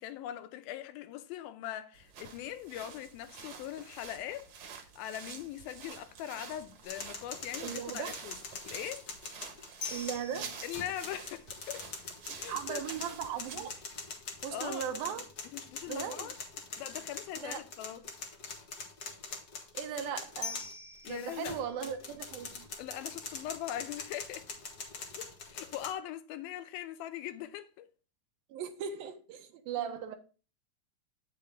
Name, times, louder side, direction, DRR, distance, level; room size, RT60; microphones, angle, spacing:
voice 1, 0.0-4.5 5.0-8.4 8.7-9.1 10.6-11.9 12.3-12.8 14.5-14.9 15.5-16.4 16.8-18.0 21.0-21.6 22.8-24.5 25.2-27.9, left 12 dB, 90° left, 2.6 m, -41 dB
sound 1, 1.9-13.8, right 6 dB, 60° right, 2.0 m, -48 dB
sound 2, 6.8-25.9, left 4 dB, 70° left, 0.9 m, -43 dB
voice 2, 7.6-8.1 9.9-10.6 12.5-13.8 14.4-15.3 15.9-16.3 17.4-17.6 19.7-20.6 21.1-22.7 28.5-30.2, right 8 dB, 85° right, 2.8 m, -38 dB
8.7 x 6.8 x 3.7 m
omnidirectional pair, 4.2 m